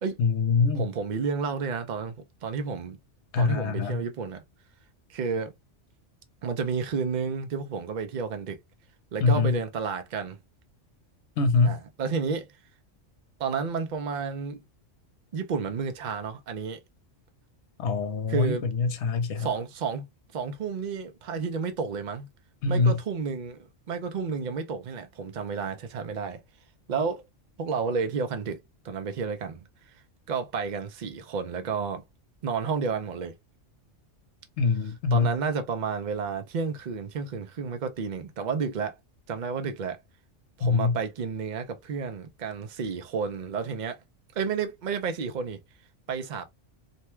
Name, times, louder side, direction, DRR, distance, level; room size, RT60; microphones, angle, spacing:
voice 1, 0.2-0.9 3.3-4.0 9.2-9.6 11.4-11.8 17.8-19.5 22.6-23.0 34.6-35.3 40.6-41.0, left 4 dB, 65° left, 1.0 m, -24 dB
voice 2, 0.7-3.0 3.4-4.4 5.1-5.5 6.4-8.6 9.1-10.4 11.6-12.5 13.4-14.6 15.3-16.8 18.3-18.7 19.4-20.1 20.3-22.3 22.7-23.6 23.9-26.4 26.9-27.2 27.6-29.6 30.3-32.0 32.4-33.3 35.1-39.0 39.3-40.0 40.6-44.0 44.4-45.6 46.1-46.4, right 5 dB, 50° right, 0.6 m, -31 dB
2.7 x 2.2 x 3.0 m
omnidirectional pair, 1.3 m